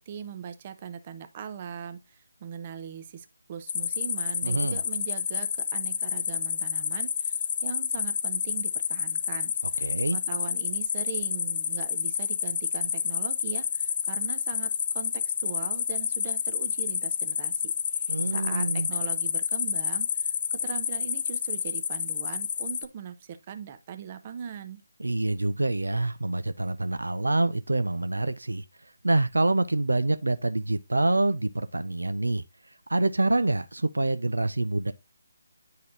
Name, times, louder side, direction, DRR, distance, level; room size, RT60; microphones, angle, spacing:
voice 1, 0.0-24.8, right 7 dB, 30° right, 0.6 m, -40 dB
sound 1, 3.7-22.9, left 8 dB, 35° left, 0.4 m, -29 dB
voice 2, 4.4-4.8 9.8-10.2 18.1-18.9 25.0-28.6 29.0-32.4 32.9-34.9, right 2 dB, 85° right, 0.4 m, -26 dB
9.4 x 4.0 x 2.5 m
figure-of-eight pair, 155°, 0 cm